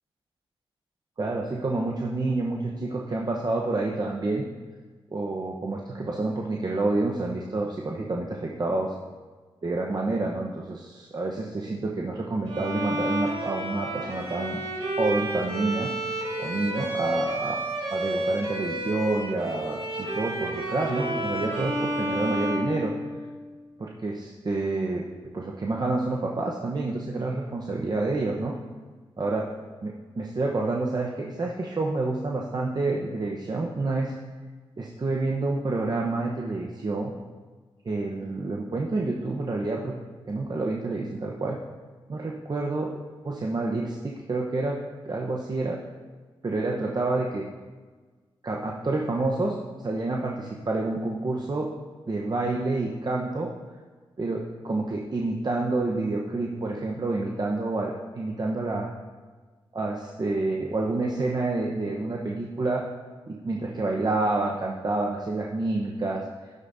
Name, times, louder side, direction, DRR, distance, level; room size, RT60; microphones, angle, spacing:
voice 1, 1.2-4.4 5.1-8.9 9.6-14.6 15.0-15.9 16.4-17.6 17.9-22.9 23.8-25.0 25.3-28.6 29.2-29.4 29.8-34.1 34.8-37.1 37.8-39.9 40.3-41.6 42.1-43.0 43.2-44.8 45.0-45.8 46.4-47.4 48.4-49.6 49.8-51.7 52.1-53.5 54.2-58.9 59.7-62.8 63.3-66.2, right 2 dB, 45° right, -1 dB, 1.0 m, -28 dB
Bowed string instrument, 12.5-23.5, right 1 dB, 70° right, 2.1 m, -30 dB
12.0 x 10.5 x 2.7 m, 1.4 s
cardioid pair, 55°, 10 cm